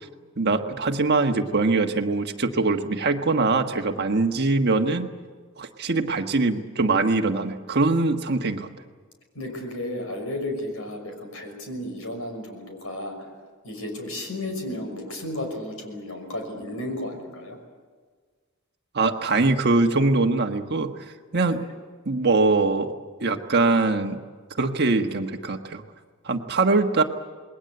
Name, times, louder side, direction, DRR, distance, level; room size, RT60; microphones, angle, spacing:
voice 1, 0.4-5.1 5.6-8.7 18.9-20.9 21.3-21.6 22.0-22.9 23.2-24.2 24.6-25.8 26.2-27.0, right 3 dB, 50° right, 5 dB, 1.5 m, -22 dB
voice 2, 9.3-13.2 13.6-17.6 21.4-21.6, left 1 dB, 80° left, 4 dB, 6.0 m, -33 dB
27.5 x 21.0 x 7.9 m, 1.5 s
head